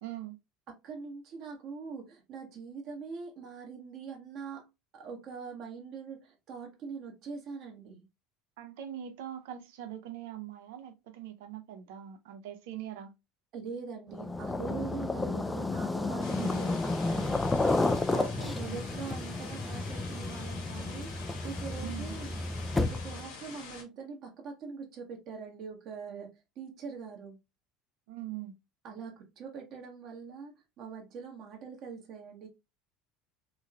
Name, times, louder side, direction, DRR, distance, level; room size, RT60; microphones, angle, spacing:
voice 1, 0.0-0.4 8.6-13.1 16.4-16.7 18.1-18.9 21.8-22.2 28.1-28.6, right 11 dB, 60° right, 0.6 m, -42 dB
voice 2, 0.8-4.7 4.9-8.1 13.5-27.4 28.8-32.5, right 5 dB, 45° right, 0.9 m, -43 dB
sound 1, 14.1-23.3, left 2 dB, 15° left, 0.3 m, -32 dB
sound 2, 16.2-23.8, left 5 dB, 65° left, 0.9 m, -46 dB
3.0 x 2.7 x 2.3 m
figure-of-eight pair, 70°, 0 cm